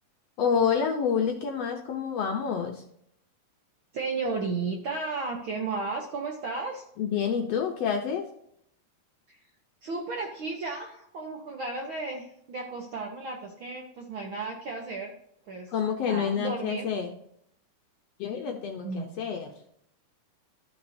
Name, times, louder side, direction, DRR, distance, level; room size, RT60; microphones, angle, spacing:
voice 1, 0.4-2.8 7.0-8.2 15.7-17.1 18.2-19.5, left 7 dB, 70° left, 3 dB, 1.6 m, -28 dB
voice 2, 3.9-6.8 9.3-9.4 9.8-15.1 15.5-15.7 16.0-16.8 18.8-19.1, right 3 dB, 65° right, 0 dB, 1.3 m, -34 dB
13.0 x 6.4 x 2.7 m, 0.71 s
omnidirectional pair, 3.6 m